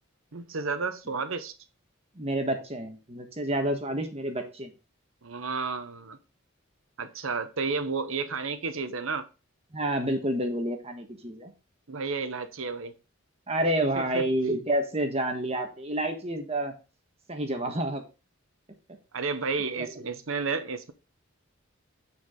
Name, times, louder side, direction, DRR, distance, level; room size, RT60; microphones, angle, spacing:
voice 1, 0.3-1.5 5.2-6.2 7.0-9.3 11.9-12.9 13.9-14.2 19.1-20.9, right 4 dB, 75° right, 0.9 m, -31 dB
voice 2, 2.2-4.7 9.7-11.5 13.5-16.7 17.3-18.0 19.8-19.9, right 1 dB, 30° right, 1.4 m, -29 dB
9.3 x 4.7 x 3.8 m
head